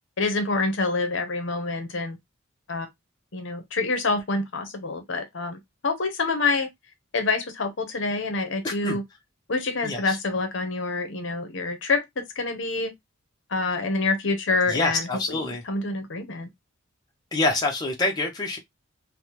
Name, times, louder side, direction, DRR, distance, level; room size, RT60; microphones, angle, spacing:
voice 1, 0.2-2.2 2.7-2.9 3.3-6.7 7.1-9.0 9.5-12.9 13.5-16.5, left 3 dB, 55° left, 0.7 m, -27 dB
voice 2, 8.6-9.0 9.8-10.2 14.7-15.6 17.3-18.6, left 2 dB, 20° left, 0.6 m, -26 dB
3.3 x 2.0 x 2.8 m
head